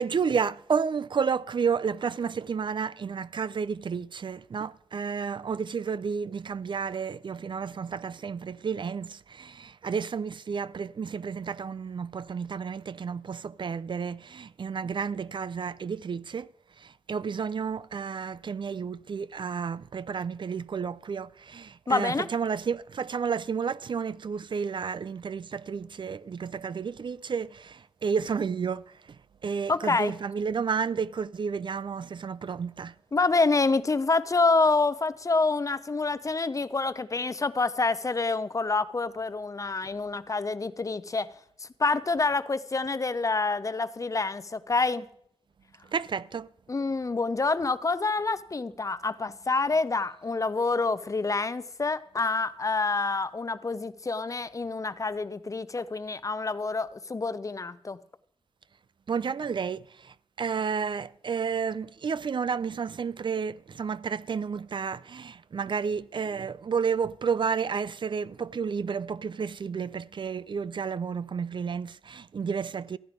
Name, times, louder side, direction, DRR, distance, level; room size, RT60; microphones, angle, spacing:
voice 1, 0.0-33.0 45.8-46.5 59.1-73.0, right 6 dB, 55° right, 0.4 m, -31 dB
voice 2, 21.9-22.3 29.7-30.1 33.1-41.3 41.6-45.1 46.7-58.0, left 3 dB, 35° left, 0.6 m, -27 dB
14.5 x 10.5 x 5.1 m
wide cardioid pair, 110°, 10 cm